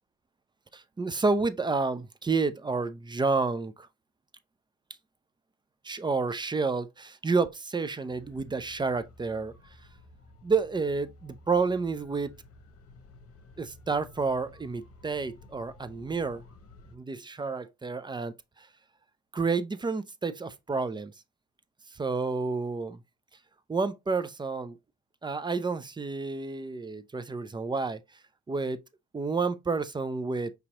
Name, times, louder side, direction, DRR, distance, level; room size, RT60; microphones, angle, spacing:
voice 1, 0.7-3.9 5.8-9.6 10.4-12.3 13.6-16.4 16.9-18.7 19.3-21.1 21.9-23.0 23.7-24.8 25.2-28.0 28.5-28.8 29.1-30.5, right 4 dB, 15° right, 0.4 m, -30 dB
sound 1, 8.1-17.0, left 2 dB, 50° left, 1.0 m, -54 dB
5.2 x 2.9 x 2.8 m
cardioid pair, 90°, 30 cm